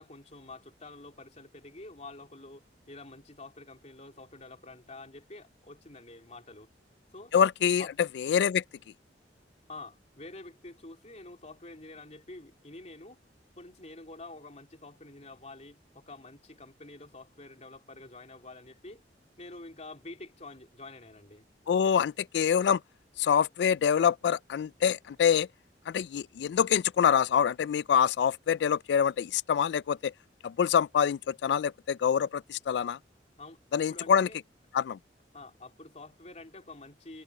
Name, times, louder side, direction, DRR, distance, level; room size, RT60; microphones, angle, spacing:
voice 1, 0.0-6.7 7.1-7.3 7.8-7.9 9.7-13.2 13.6-19.0 19.4-21.4 33.4-34.4 35.3-37.2, left 2 dB, 40° left, 3.5 m, -48 dB
voice 2, 7.3-8.6 21.7-22.8 23.2-25.5 25.9-30.1 30.4-33.0 33.7-34.3 34.7-35.0, left 8 dB, 70° left, 0.3 m, -25 dB
head